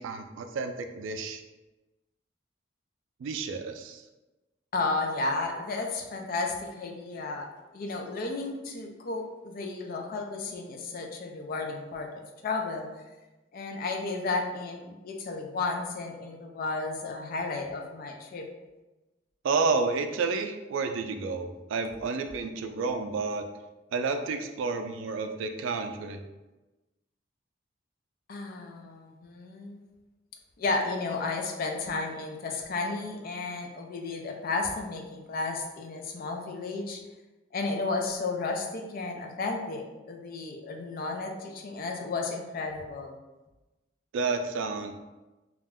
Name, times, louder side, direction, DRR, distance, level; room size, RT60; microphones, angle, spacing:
voice 1, 0.0-1.4 3.2-4.0 19.4-23.5 23.9-26.2 44.1-44.9, right 4 dB, 90° right, 7 dB, 0.3 m, -30 dB
voice 2, 4.7-7.5 7.7-12.1 12.4-12.9 13.5-18.5 28.3-29.8 30.6-37.0 37.5-43.1, left 3 dB, 50° left, 3 dB, 0.4 m, -33 dB
2.4 x 2.1 x 3.4 m, 1.1 s
head